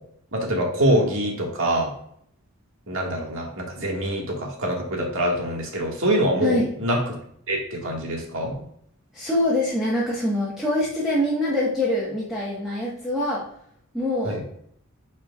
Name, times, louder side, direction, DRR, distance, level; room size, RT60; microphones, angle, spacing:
voice 1, 0.3-1.9 2.9-7.0 7.5-8.5 14.2-14.4, right 1 dB, 65° right, 0 dB, 1.8 m, -24 dB
voice 2, 9.1-13.4 13.9-14.4, left 1 dB, ahead, -7 dB, 1.3 m, -24 dB
8.8 x 4.5 x 2.4 m, 0.67 s
head